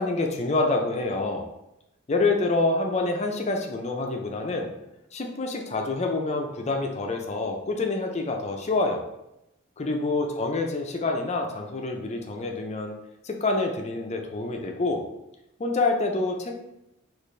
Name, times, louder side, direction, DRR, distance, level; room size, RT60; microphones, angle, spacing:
voice 1, 0.0-1.5 2.1-4.7 5.1-9.0 9.8-12.9 13.2-15.0 15.6-16.5, left 3 dB, 35° left, 2 dB, 0.5 m, -27 dB
4.2 x 2.5 x 3.2 m, 0.88 s
head